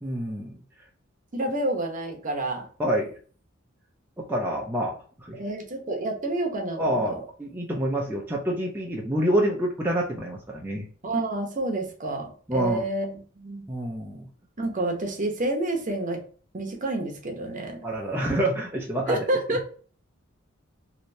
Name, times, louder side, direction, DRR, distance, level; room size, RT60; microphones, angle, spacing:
voice 1, 0.0-0.5 2.8-3.1 4.2-5.4 6.8-10.8 12.5-12.9 13.7-14.3 17.8-19.2 19.5-19.6, equal, 10° right, -2 dB, 0.6 m, -27 dB
voice 2, 1.3-2.7 5.3-7.2 11.0-13.7 14.6-16.2 16.5-17.8 19.1-19.7, right 2 dB, 40° right, 2 dB, 0.9 m, -29 dB
3.2 x 2.8 x 2.6 m, 0.41 s
head